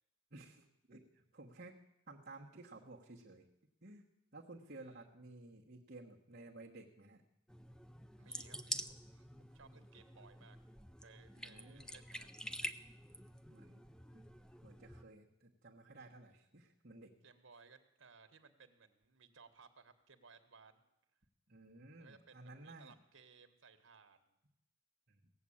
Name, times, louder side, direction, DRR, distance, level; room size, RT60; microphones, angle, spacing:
voice 1, 0.3-1.8 2.1-3.5 3.8-7.2 11.4-11.9 13.5-13.8 14.1-14.2 14.6-17.1 21.5-22.9 25.1-25.3, right 2 dB, 50° right, -6 dB, 1.3 m, -55 dB
sound 1, 7.5-15.0, equal, 5° left, 0.4 m, -48 dB
voice 2, 8.2-10.6 11.0-12.3 17.2-20.8 22.0-24.3, right 5 dB, 80° right, 8 dB, 1.4 m, -62 dB
17.0 x 7.6 x 8.6 m, 0.85 s
head